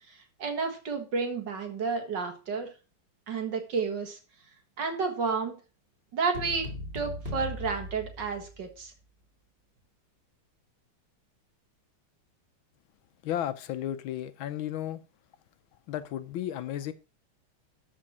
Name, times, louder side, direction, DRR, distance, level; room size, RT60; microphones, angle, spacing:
voice 1, 0.1-2.7 3.3-4.2 4.8-5.6 6.1-6.7 6.9-8.9, right 5 dB, 55° right, 2.2 m, -31 dB
sound 1, 6.3-8.9, left 1 dB, 25° right, 2.9 m, -39 dB
voice 2, 13.2-15.0 15.9-16.9, left 11 dB, 75° left, 1.4 m, -33 dB
12.5 x 4.3 x 5.9 m
omnidirectional pair, 2.4 m